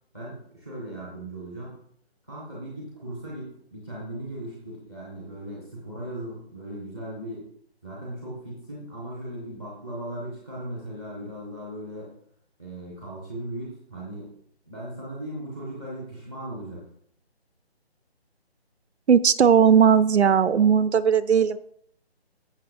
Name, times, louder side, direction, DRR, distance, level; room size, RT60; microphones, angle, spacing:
voice 1, 0.1-1.8 2.2-7.5 7.8-12.1 12.6-14.3 14.7-16.8, right 1 dB, 5° left, -5 dB, 0.6 m, -37 dB
voice 2, 19.1-21.6, right 7 dB, 90° right, 15 dB, 0.6 m, -18 dB
14.5 x 6.4 x 2.5 m, 0.70 s
figure-of-eight pair, 160°, 32 cm